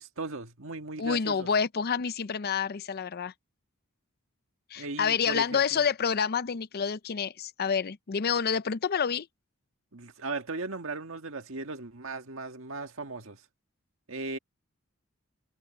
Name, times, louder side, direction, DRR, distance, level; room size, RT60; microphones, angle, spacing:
voice 1, 0.0-1.5 4.8-5.9 9.9-13.4 14.1-14.4, right 3 dB, 70° right, 1.8 m, -37 dB
voice 2, 1.0-3.3 4.7-9.3, left 6 dB, 50° left, 0.5 m, -28 dB
head